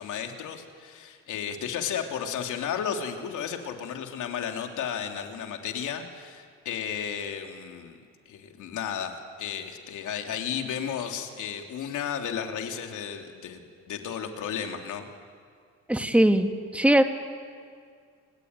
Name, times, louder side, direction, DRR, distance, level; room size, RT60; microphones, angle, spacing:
voice 1, 0.0-15.1, left 8 dB, 80° left, 3 dB, 3.1 m, -33 dB
voice 2, 15.9-17.0, right 1 dB, 5° right, 6 dB, 2.1 m, -21 dB
28.5 x 21.0 x 9.6 m, 2.1 s
cardioid pair, 90°, 30 cm